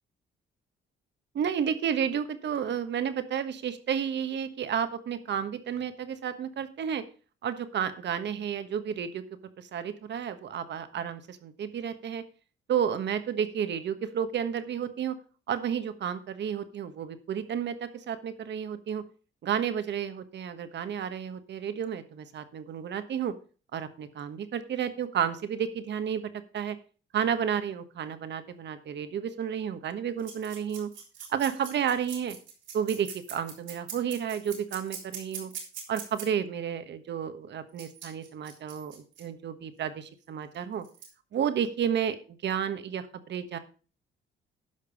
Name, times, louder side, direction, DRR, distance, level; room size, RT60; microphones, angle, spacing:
voice 1, 1.3-7.0 7.4-9.2 9.6-12.2 12.7-15.1 15.5-19.0 19.4-23.3 23.7-26.8 27.1-30.9 31.3-32.4 32.7-35.5 35.9-40.8 41.3-43.6, right 8 dB, 60° right, 11 dB, 1.3 m, -31 dB
sound 1, 30.2-36.3 37.8-39.2 40.5-40.6 40.8-41.1, right 7 dB, 75° right, 3.5 m, -42 dB
12.5 x 5.4 x 5.1 m, 0.36 s
cardioid pair, 90°, 20 cm